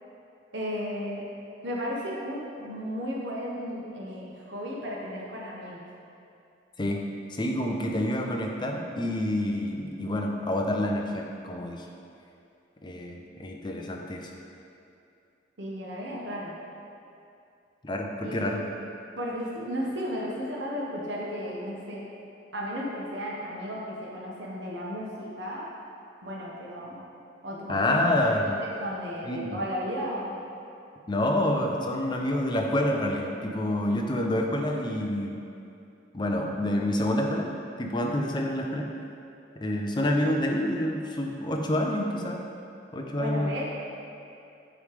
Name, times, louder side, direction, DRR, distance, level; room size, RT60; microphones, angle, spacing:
voice 1, 0.5-1.2 1.6-5.8 15.6-16.6 18.2-18.6 19.2-22.0 22.5-25.7 26.2-27.0 27.4-28.0 28.3-30.4 43.2-43.6, equal, 80° right, -4 dB, 1.3 m, -34 dB
voice 2, 7.3-11.9 12.8-14.3 17.8-18.6 27.7-28.6 29.3-29.6 31.1-35.4 36.1-37.5 37.8-38.9 39.6-42.4 42.9-43.6, left 1 dB, 25° left, 1 dB, 0.6 m, -28 dB
8.5 x 3.3 x 5.0 m, 2.6 s
head